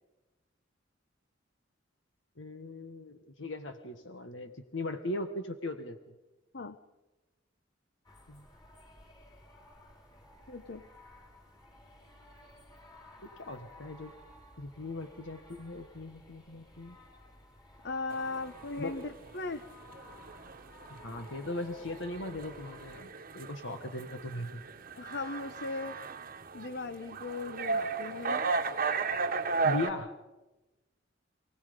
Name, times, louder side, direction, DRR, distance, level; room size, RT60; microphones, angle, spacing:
voice 1, 2.4-6.1 8.3-8.5 13.4-14.1 14.6-17.0 18.8-19.1 20.9-24.6 29.6-30.1, left 2 dB, 80° left, 7 dB, 1.4 m, -39 dB
sound 1, 8.0-23.0, left 1 dB, 25° left, 5.0 m, -55 dB
voice 2, 10.5-10.8 17.8-19.6 25.0-26.0 26.5-28.4, left 3 dB, 60° left, 10 dB, 0.9 m, -38 dB
sound 2, 18.1-29.9, right 4 dB, 50° right, 1.2 m, -35 dB
27.5 x 18.0 x 5.3 m, 1.1 s
head